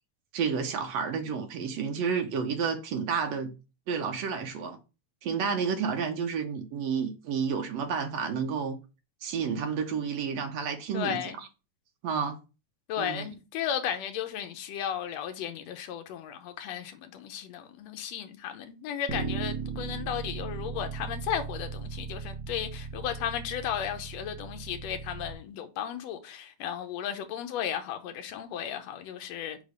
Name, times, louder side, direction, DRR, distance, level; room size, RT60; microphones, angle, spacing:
voice 1, 0.3-3.5 3.9-4.8 5.2-8.8 9.2-11.5 12.0-12.4 13.0-13.3, right 6 dB, 70° right, 2.0 m, -30 dB
voice 2, 10.9-11.4 12.9-29.6, left 9 dB, 70° left, 1.9 m, -35 dB
Bass guitar, 19.1-25.3, right 5 dB, 50° right, 1.6 m, -37 dB
5.3 x 3.9 x 4.9 m
omnidirectional pair, 3.3 m